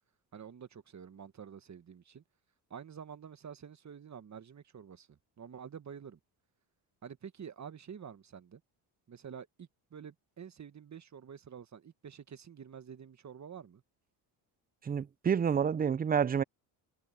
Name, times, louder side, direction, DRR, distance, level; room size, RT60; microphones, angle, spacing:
voice 1, 0.3-2.2 2.7-6.2 7.0-8.6 9.1-13.8, right 7 dB, 35° right, 1.4 m, -48 dB
voice 2, 14.8-16.4, right 7 dB, 20° right, 0.4 m, -29 dB
supercardioid pair, 70°, 48 cm